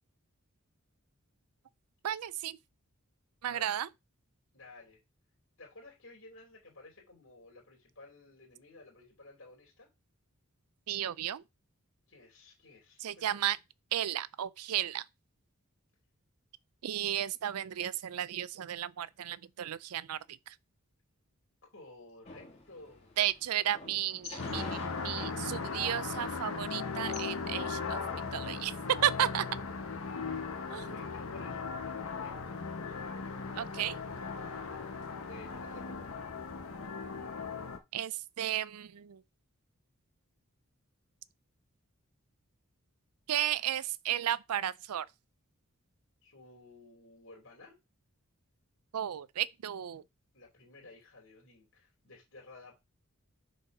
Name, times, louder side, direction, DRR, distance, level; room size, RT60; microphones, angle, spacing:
voice 1, 2.0-2.6 3.4-3.9 10.9-11.4 13.0-13.6 13.9-15.0 16.8-20.6 23.2-24.8 25.0-28.0 28.3-28.7 29.0-29.5 30.7-30.9 33.5-34.0 37.9-39.2 43.3-45.1 48.9-50.0, right 11 dB, 90° right, 0.4 m, -33 dB
voice 2, 3.4-3.8 4.5-5.0 5.6-9.9 12.1-13.4 21.7-23.2 30.8-33.0 34.6-34.9 35.3-36.2 46.2-47.8 50.3-52.8, left 2 dB, 60° left, 2.8 m, -54 dB
sound 1, 22.3-27.3, left 2 dB, 30° left, 2.0 m, -47 dB
sound 2, 24.4-37.8, left 4 dB, 75° left, 1.1 m, -38 dB
6.3 x 4.3 x 5.3 m
head